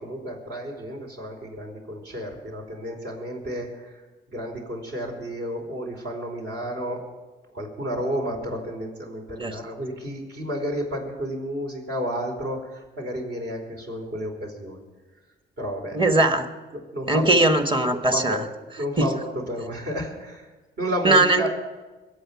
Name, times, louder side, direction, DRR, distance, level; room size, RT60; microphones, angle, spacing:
voice 1, 0.0-3.9 4.3-7.0 7.5-14.8 15.6-16.2 16.9-17.4 17.9-18.4 18.8-20.5 20.8-21.5, equal, 60° right, 1 dB, 4.6 m, -31 dB
voice 2, 15.9-16.5 17.1-18.4 19.0-19.1 21.0-21.5, right 2 dB, 25° right, 7 dB, 1.5 m, -20 dB
22.5 x 8.6 x 6.0 m, 1.2 s
cardioid pair, 90°, 20 cm